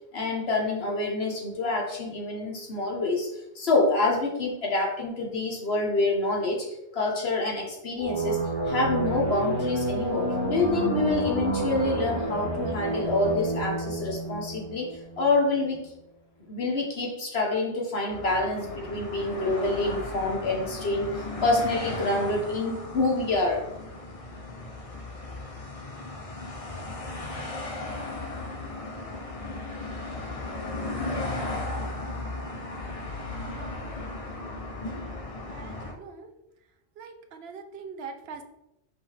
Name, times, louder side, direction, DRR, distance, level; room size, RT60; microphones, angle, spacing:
voice 1, 0.1-3.3 3.5-6.6 6.9-14.9 15.2-15.8 16.5-21.1 21.4-23.6, left 2 dB, 70° left, 0 dB, 1.6 m, -27 dB
sound 1, 8.0-15.4, right 1 dB, 25° right, 2.4 m, -30 dB
sound 2, 18.1-35.9, left 2 dB, 35° left, 0.9 m, -36 dB
voice 2, 35.5-36.3 37.0-38.4, right 5 dB, 75° right, 6 dB, 1.0 m, -42 dB
5.6 x 5.2 x 3.5 m, 0.88 s
omnidirectional pair, 1.1 m